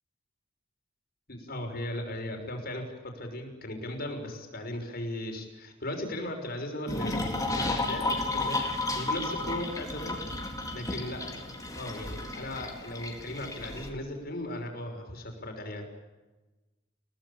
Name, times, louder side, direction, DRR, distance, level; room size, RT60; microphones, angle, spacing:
voice 1, 1.3-2.8 3.1-15.9, left 1 dB, 50° left, 4 dB, 6.3 m, -37 dB
sound 1, 6.9-13.9, left 2 dB, 20° left, 4.0 m, -33 dB
30.0 x 18.5 x 8.9 m, 1.2 s
head